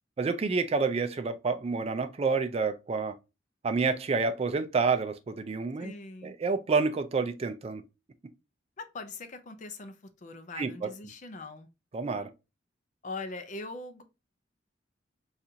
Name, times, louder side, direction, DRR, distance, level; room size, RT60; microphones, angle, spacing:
voice 1, 0.2-3.2 3.6-5.9 6.2-7.8 10.6-10.9 11.9-12.3, right 4 dB, 35° right, 0.4 m, -28 dB
voice 2, 5.8-6.3 8.8-11.7 13.0-14.0, left 3 dB, 40° left, 0.5 m, -41 dB
4.1 x 2.5 x 2.7 m
head